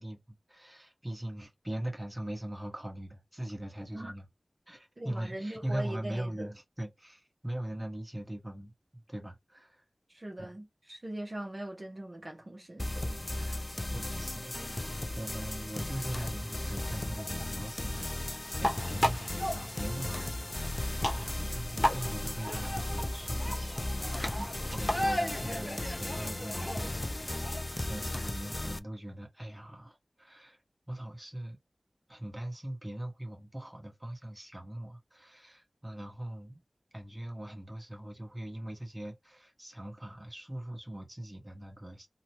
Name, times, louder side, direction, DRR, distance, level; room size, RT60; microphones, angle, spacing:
voice 1, 0.0-4.3 4.7-9.8 10.4-10.5 13.9-14.9 15.2-30.6 30.9-31.6 32.1-36.6 36.9-42.1, right 1 dB, 20° right, 1.1 m, -41 dB
voice 2, 5.0-6.5 10.1-13.7 24.2-24.5, right 1 dB, 50° right, 0.9 m, -41 dB
sound 1, 12.8-28.8, left 1 dB, 35° left, 0.3 m, -36 dB
sound 2, 16.1-27.6, equal, 20° left, 0.9 m, -36 dB
2.7 x 2.2 x 2.9 m
wide cardioid pair, 50°, 0 cm